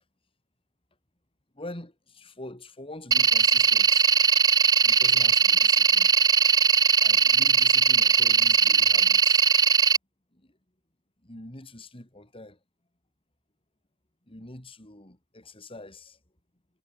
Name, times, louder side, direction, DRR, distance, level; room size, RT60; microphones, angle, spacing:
voice 1, 1.5-4.1 4.8-6.1 7.0-9.4 10.3-10.6 11.2-12.6 14.3-16.2, left 1 dB, 25° left, 3.4 m, -44 dB
sound 1, 3.1-10.0, right 6 dB, 20° right, 0.4 m, -20 dB
head